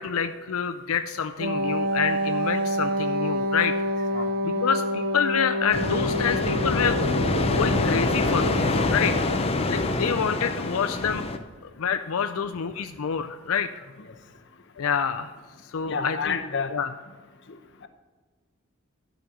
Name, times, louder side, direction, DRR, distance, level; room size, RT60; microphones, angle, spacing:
voice 1, 0.0-3.7 4.4-7.0 7.5-9.2 9.6-11.3 11.6-13.8 14.8-15.3 15.6-16.4 16.7-16.9, left 7 dB, 85° left, 8 dB, 0.5 m, -27 dB
Wind instrument woodwind instrument, 1.4-9.5, equal, 45° right, 0.9 m, -28 dB
sound 1, 5.7-11.4, left 2 dB, 30° left, 0.6 m, -25 dB
voice 2, 15.9-16.7, left 5 dB, 55° left, 7 dB, 0.9 m, -30 dB
11.5 x 5.1 x 6.4 m, 1.5 s
head